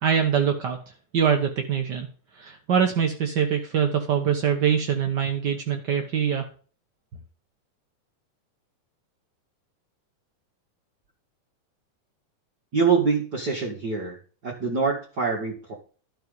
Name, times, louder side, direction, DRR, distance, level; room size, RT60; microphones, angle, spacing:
voice 1, 0.0-0.8 1.1-2.1 2.3-6.5, right 7 dB, 60° right, 4 dB, 1.1 m, -23 dB
voice 2, 12.7-14.2 14.4-15.7, right 5 dB, 35° right, -3 dB, 2.3 m, -24 dB
12.5 x 6.5 x 5.4 m, 0.39 s
omnidirectional pair, 3.6 m